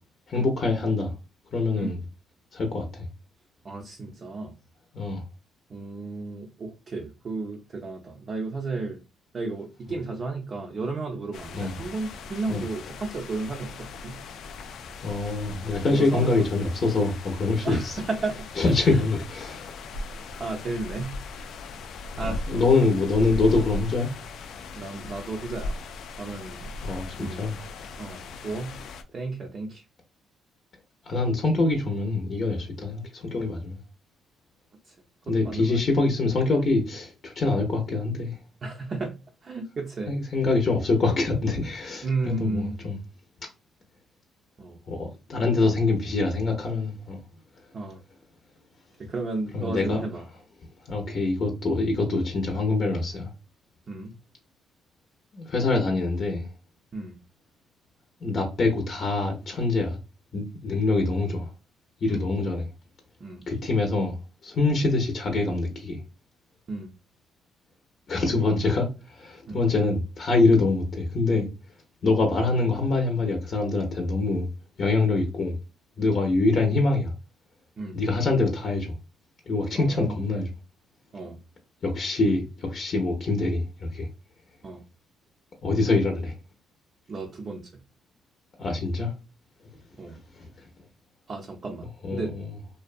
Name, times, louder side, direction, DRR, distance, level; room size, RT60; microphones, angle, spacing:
voice 1, 0.3-1.1 1.5-2.0 2.5-3.1 4.9-5.2 11.5-11.7 12.5-12.6 15.0-17.9 18.6-19.7 22.3-24.1 26.8-27.6 31.1-33.8 35.3-38.4 40.1-43.0 44.9-47.2 49.5-50.0 50.9-53.3 55.3-56.5 58.2-60.0 60.3-61.5 62.0-62.6 63.5-64.2 64.4-66.0 68.1-71.5 72.0-74.5 74.8-75.5 76.0-77.1 77.9-78.9 79.5-80.5 81.8-84.1 85.6-86.3 88.6-89.1 90.4-90.5 92.0-92.4, left 3 dB, 50° left, 0.7 m, -25 dB
voice 2, 3.6-4.5 5.7-9.0 9.3-14.2 15.8-16.5 17.6-18.4 18.8-19.0 20.4-21.2 22.2-22.6 24.8-25.8 26.2-26.7 27.2-27.5 28.0-28.8 29.1-29.8 34.8-35.0 35.3-35.8 38.6-39.1 39.4-40.1 42.0-42.8 44.6-44.8 47.7-48.0 49.0-50.2 53.9-54.1 56.9-57.2 62.1-62.3 63.2-63.4 66.7-66.9 69.5-69.6 77.8-78.0 79.7-80.2 81.1-81.4 84.6-84.8 87.1-87.7 90.0-90.2 91.3-92.3, right 3 dB, 45° right, 0.5 m, -33 dB
sound 1, 11.3-29.0, left 2 dB, 70° left, 0.3 m, -38 dB
2.5 x 2.2 x 2.4 m
cardioid pair, 80°, 0 cm